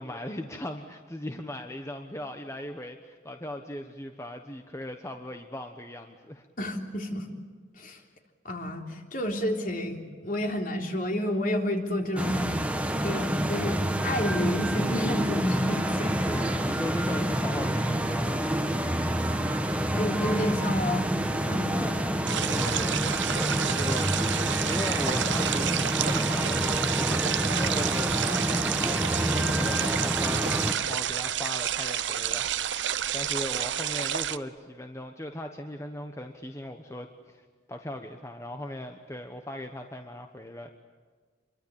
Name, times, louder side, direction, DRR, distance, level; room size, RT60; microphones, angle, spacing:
voice 1, 0.0-6.5 16.3-18.5 22.5-23.2 23.7-27.2 27.5-32.9 33.1-40.7, left 1 dB, 15° left, 5 dB, 1.2 m, -38 dB
voice 2, 6.6-7.3 7.8-8.0 8.5-12.6 13.0-16.3 19.9-22.0, left 1 dB, 45° left, 2 dB, 3.5 m, -30 dB
sound 1, 12.2-30.7, right 1 dB, 5° right, 1.4 m, -28 dB
sound 2, 22.3-34.4, right 10 dB, 75° right, 0.8 m, -30 dB
27.0 x 23.5 x 8.9 m, 1.5 s
head